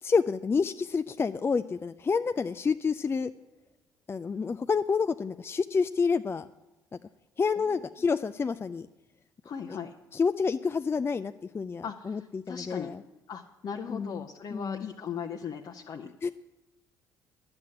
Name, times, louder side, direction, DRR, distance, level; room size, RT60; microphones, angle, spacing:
voice 1, 0.0-3.3 4.1-6.5 7.4-8.9 10.1-13.0 13.9-14.9 16.2-16.3, left 5 dB, 25° left, 10 dB, 0.4 m, -29 dB
voice 2, 9.4-9.9 11.8-12.9 13.3-16.1, left 7 dB, 45° left, 2 dB, 0.9 m, -38 dB
11.0 x 7.9 x 7.9 m, 1.0 s
hypercardioid pair, 55°, 10 cm